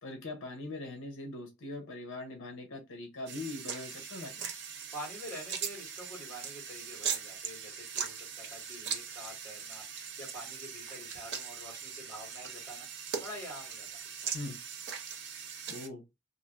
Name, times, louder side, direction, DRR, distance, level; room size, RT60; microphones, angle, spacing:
voice 1, 0.0-4.5 14.3-14.6 15.7-16.0, left 2 dB, 60° left, 0.7 m, -41 dB
sound 1, 3.3-15.9, right 7 dB, 55° right, 0.5 m, -40 dB
voice 2, 4.9-12.9 13.2-14.0, equal, 10° left, 1.9 m, -47 dB
3.1 x 2.5 x 2.4 m
head